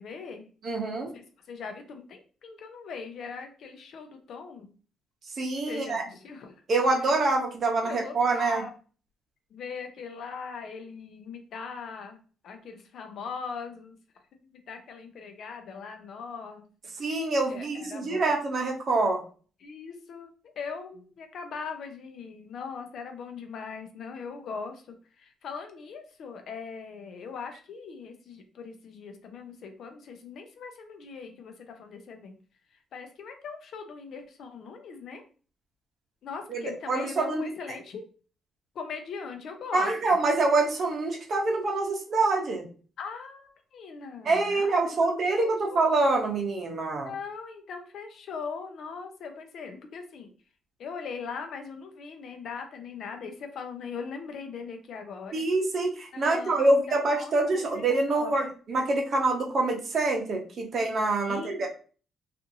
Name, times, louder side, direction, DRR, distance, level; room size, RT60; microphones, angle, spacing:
voice 1, 0.0-0.4 1.1-4.7 5.7-6.5 7.0-7.1 7.8-8.7 9.5-12.2 12.4-14.0 14.4-16.6 17.5-18.3 19.6-32.4 32.9-35.2 36.2-38.0 38.7-40.2 43.0-44.8 45.0-45.1 45.4-45.8 47.0-50.3 50.8-55.4 56.1-58.5 61.2-61.6, left 5 dB, 65° left, 5 dB, 0.5 m, -40 dB
voice 2, 0.6-1.1 5.4-6.0 6.7-8.6 17.0-19.2 36.5-37.5 39.7-42.6 44.2-47.1 55.3-61.7, right 2 dB, 50° right, 1 dB, 0.7 m, -26 dB
2.6 x 2.5 x 2.6 m, 0.39 s
cardioid pair, 90°, 0 cm